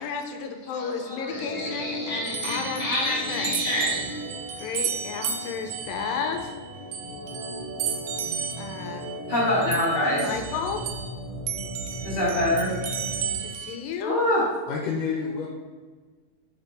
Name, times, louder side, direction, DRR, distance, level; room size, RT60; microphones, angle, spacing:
voice 1, 0.0-3.7 4.6-6.6 8.6-9.2 10.0-10.8 13.4-14.2, left 6 dB, 90° left, 5 dB, 2.4 m, -33 dB
voice 2, 0.7-4.0 9.3-10.2 12.0-12.7 14.0-14.4, left 1 dB, 50° left, -8 dB, 0.6 m, -26 dB
Organ, 1.2-13.4, equal, 60° right, 1.5 m, -37 dB
sound 1, 2.2-11.2 11.5-13.8, right 8 dB, 80° right, 2.1 m, -34 dB
voice 3, 14.7-15.5, left 6 dB, 75° left, -1 dB, 2.2 m, -28 dB
7.0 x 4.4 x 4.0 m, 1.4 s
omnidirectional pair, 4.0 m